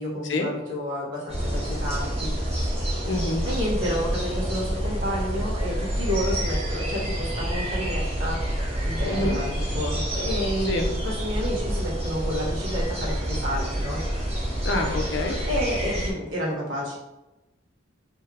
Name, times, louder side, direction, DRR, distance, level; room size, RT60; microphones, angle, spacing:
voice 1, 0.0-2.5 3.4-14.5 15.5-16.9, equal, 70° right, -5 dB, 1.5 m, -30 dB
sound 1, 1.3-16.1, equal, 30° right, 1.2 m, -28 dB
voice 2, 3.0-3.4 9.0-9.4 10.7-10.9 14.6-15.4, left 2 dB, 55° left, 3 dB, 0.6 m, -26 dB
3.5 x 3.3 x 3.4 m, 0.98 s
head